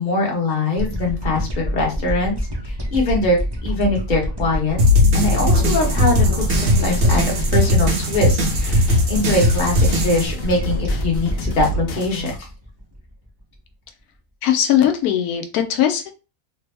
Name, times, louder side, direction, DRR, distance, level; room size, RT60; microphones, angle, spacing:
voice 1, 0.0-2.4 2.6-4.8 5.1-12.5, left 2 dB, 40° left, -1 dB, 1.0 m, -22 dB
sound 1, 0.8-13.2, equal, 30° right, 0.5 m, -26 dB
sound 2, 4.8-10.3, left 1 dB, 80° right, 1.3 m, -18 dB
sound 3, 6.4-12.4, right 1 dB, 70° left, 1.1 m, -31 dB
voice 2, 14.4-16.1, left 10 dB, 90° left, 5 dB, 1.1 m, -19 dB
3.3 x 2.0 x 3.3 m, 0.30 s
omnidirectional pair, 1.5 m